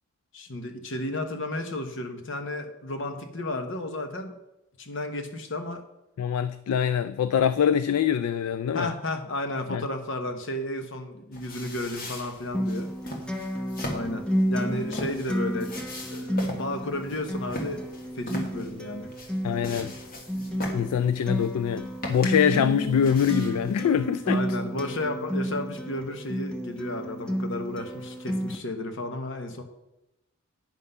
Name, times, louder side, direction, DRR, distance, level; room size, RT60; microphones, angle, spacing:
voice 1, 0.3-4.3 4.8-5.8 8.7-12.9 13.9-15.7 16.1-17.8 18.1-19.1 24.2-29.6, left 1 dB, 55° left, 7 dB, 1.0 m, -33 dB
voice 2, 6.2-8.9 9.7-9.8 19.4-19.9 20.7-24.4, left 8 dB, 90° left, 13 dB, 0.3 m, -24 dB
sound 1, 11.3-23.7, left 1 dB, 40° left, 1.5 m, -40 dB
Acoustic guitar, 12.5-28.6, equal, 5° left, 0.7 m, -31 dB
9.2 x 5.8 x 5.5 m, 0.92 s
head